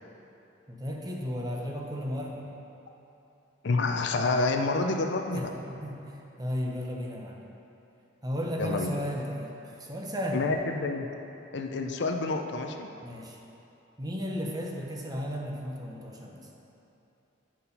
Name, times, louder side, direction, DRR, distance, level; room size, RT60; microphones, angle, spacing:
voice 1, 0.7-2.5 5.3-5.5 5.8-7.4 8.2-10.4 13.0-13.4 14.0-16.5, equal, 20° right, -1 dB, 0.8 m, -34 dB
voice 2, 3.6-5.5 8.6-9.0 10.3-11.1 11.5-12.9, left 3 dB, 60° left, 4 dB, 0.5 m, -28 dB
8.5 x 4.6 x 5.3 m, 2.9 s
head